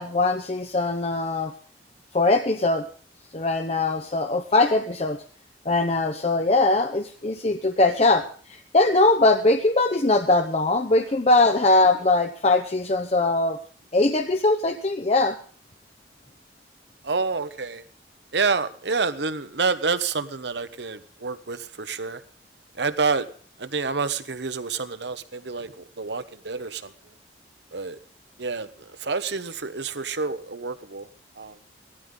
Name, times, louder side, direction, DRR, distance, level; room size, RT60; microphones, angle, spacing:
voice 1, 0.0-1.5 2.1-2.8 3.3-5.2 5.7-13.6 13.9-15.4, left 2 dB, 35° left, 6 dB, 0.8 m, -21 dB
voice 2, 17.0-17.8 18.3-22.2 22.8-23.3 23.6-26.9 27.7-28.0 28.4-31.1 31.4-31.6, right 4 dB, 70° right, 12 dB, 1.1 m, -28 dB
17.0 x 13.5 x 3.8 m, 0.43 s
head